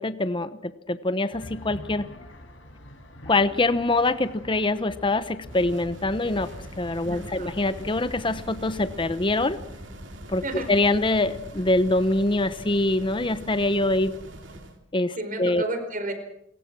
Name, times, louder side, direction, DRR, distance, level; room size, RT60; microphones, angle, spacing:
voice 1, 0.0-2.1 3.3-6.5 6.8-9.6 10.3-14.1 14.9-15.6, left 2 dB, 25° left, 12 dB, 1.0 m, -24 dB
sound 1, 1.3-9.1, left 1 dB, 70° left, 5.4 m, -45 dB
sound 2, 5.4-14.8, right 1 dB, 70° right, 3.2 m, -42 dB
voice 2, 7.1-7.5 10.4-10.8 15.2-16.1, right 2 dB, 45° right, 8 dB, 4.7 m, -32 dB
27.0 x 22.5 x 6.2 m, 0.77 s
head